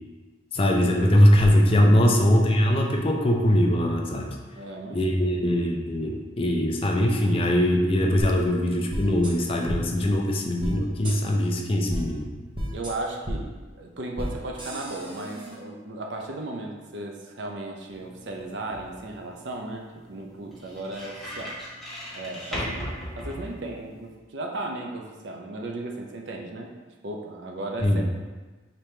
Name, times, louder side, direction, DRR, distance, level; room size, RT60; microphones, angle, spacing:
voice 1, 0.5-4.3 4.9-12.3 27.8-28.0, equal, 30° left, 1 dB, 0.4 m, -21 dB
voice 2, 4.6-5.2 12.7-21.6 22.1-26.7 27.0-28.0, right 2 dB, 65° right, 1 dB, 0.6 m, -36 dB
sound 1, 8.2-8.3 8.9-9.3 9.7-9.8 10.6-10.7 11.0-11.2 11.9-12.0 12.5-12.9 13.2-13.4 14.2-14.3 14.6-15.6, equal, 25° right, 0.7 m, -32 dB
sound 2, 17.9-24.1, equal, ahead, 1.0 m, -38 dB
5.1 x 2.9 x 3.2 m, 1.3 s
head